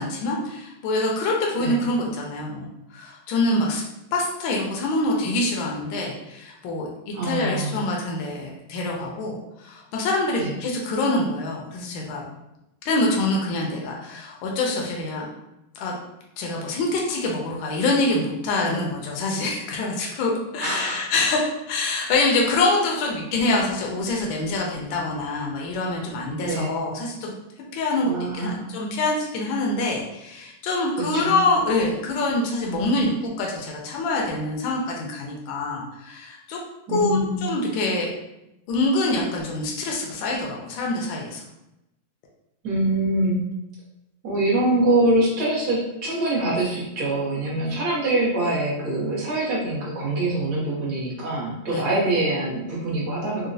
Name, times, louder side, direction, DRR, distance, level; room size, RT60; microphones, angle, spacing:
voice 1, 0.0-3.8 4.1-12.2 12.8-15.3 15.8-15.9 16.4-27.3 27.7-36.6 36.9-38.1 38.7-41.4 47.7-47.8 51.7-51.8, left 2 dB, 75° left, -1 dB, 1.3 m, -25 dB
voice 2, 7.1-7.8 10.4-10.5 20.6-21.0 26.5-26.7 28.0-28.6 31.1-31.3 36.9-37.5 42.6-43.4 44.2-53.5, right 1 dB, 60° right, -5 dB, 1.3 m, -24 dB
3.9 x 2.1 x 2.6 m, 0.90 s
omnidirectional pair, 2.2 m